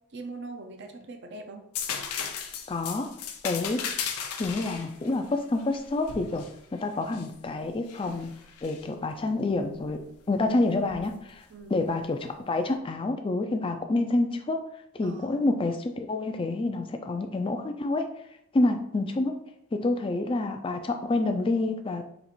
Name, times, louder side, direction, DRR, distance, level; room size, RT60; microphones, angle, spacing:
voice 1, 0.1-1.6 11.5-11.8 15.0-15.4, right 3 dB, 50° right, 5 dB, 0.5 m, -41 dB
sound 1, 1.7-7.3 7.9-8.8 10.9-11.1, left 7 dB, 90° left, 0.5 m, -36 dB
voice 2, 2.7-3.1 3.4-3.8 4.4-6.4 6.7-8.3 8.6-10.0 10.3-11.4 11.7-14.6 14.9-18.1 18.5-19.4 19.7-22.1, left 2 dB, 25° left, 6 dB, 0.3 m, -28 dB
4.0 x 2.4 x 4.3 m, 0.77 s
head